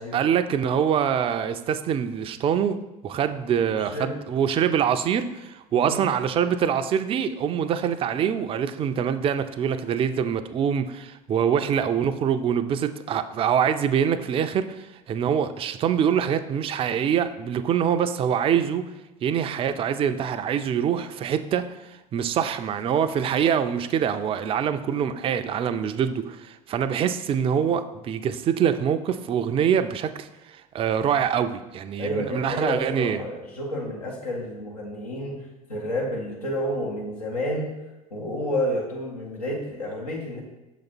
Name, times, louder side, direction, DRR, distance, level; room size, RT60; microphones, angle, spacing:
voice 1, 0.1-18.9 19.2-33.2, right 8 dB, 30° right, 10 dB, 0.4 m, -25 dB
voice 2, 3.4-4.2 5.7-6.0 32.0-37.7 38.1-40.4, equal, 85° left, -2 dB, 0.9 m, -30 dB
6.4 x 4.0 x 4.2 m, 1.0 s
figure-of-eight pair, 70°, 19 cm